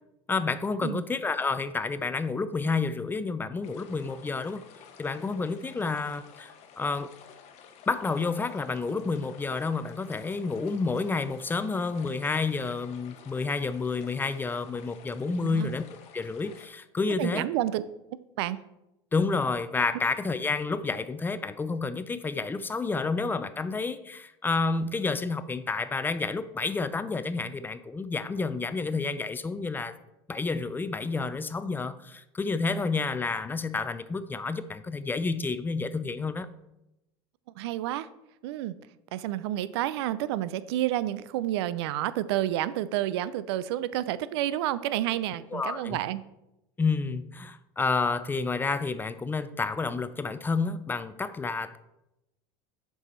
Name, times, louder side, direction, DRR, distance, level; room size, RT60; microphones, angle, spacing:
voice 1, 0.3-4.6 5.0-7.1 7.9-15.8 16.1-17.5 19.1-30.0 30.3-36.5 45.5-46.0 46.8-51.8, left 4 dB, 15° left, 13 dB, 0.4 m, -30 dB
sound 1, 3.6-16.7, left 7 dB, 55° left, 1.0 m, -52 dB
voice 2, 15.4-15.7 17.2-17.8 18.4-18.6 37.6-38.1 38.4-38.8 39.1-46.2, right 13 dB, 80° right, 16 dB, 0.4 m, -30 dB
6.5 x 4.7 x 4.4 m, 0.90 s
supercardioid pair, 105°, 14 cm